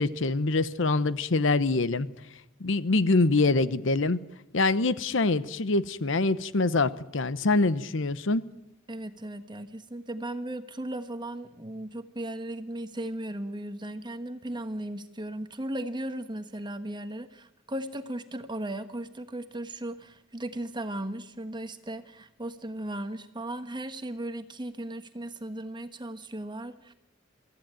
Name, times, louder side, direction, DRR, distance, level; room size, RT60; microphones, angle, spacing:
voice 1, 0.0-2.1 2.6-4.2 4.5-8.4, left 3 dB, 70° left, 15 dB, 0.9 m, -25 dB
voice 2, 8.9-26.9, right 1 dB, 25° right, 9 dB, 1.3 m, -36 dB
23.0 x 14.5 x 8.9 m, 0.85 s
head